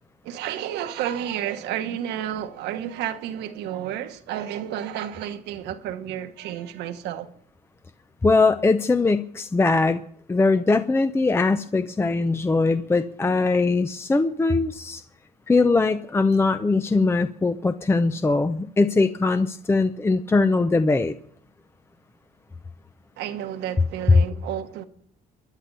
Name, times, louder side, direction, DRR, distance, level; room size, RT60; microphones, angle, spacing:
voice 1, 0.2-7.3 23.2-24.8, right 10 dB, 85° right, 1.3 m, -31 dB
voice 2, 8.2-10.0 10.3-15.0 15.5-21.1, left 3 dB, 15° left, 0.6 m, -21 dB
21.0 x 11.0 x 5.5 m
cardioid pair, 110°, 17 cm